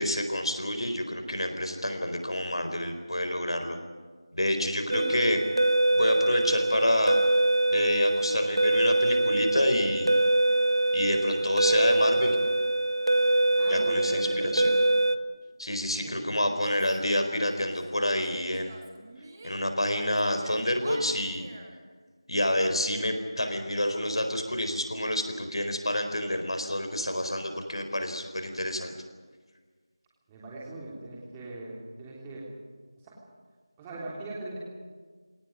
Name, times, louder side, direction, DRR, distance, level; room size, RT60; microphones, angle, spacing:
voice 1, 0.0-3.8 4.3-5.4 5.9-7.2 7.7-10.1 10.9-12.4 13.7-14.6 15.6-18.8 19.4-21.5 22.3-29.0, left 1 dB, 90° left, 6 dB, 4.4 m, -28 dB
sound 1, 4.9-15.2, right 1 dB, 70° right, 1.3 m, -24 dB
voice 2, 13.6-14.7 16.0-16.2 30.3-32.4 33.0-33.1 33.8-34.6, right 2 dB, 10° right, -5 dB, 3.5 m, -39 dB
Female speech woman speaking / Yell, 16.6-17.8 18.1-19.6 19.9-21.7, right 2 dB, 25° right, 2.4 m, -44 dB
21.0 x 18.5 x 9.7 m, 1.5 s
figure-of-eight pair, 170°, 3 cm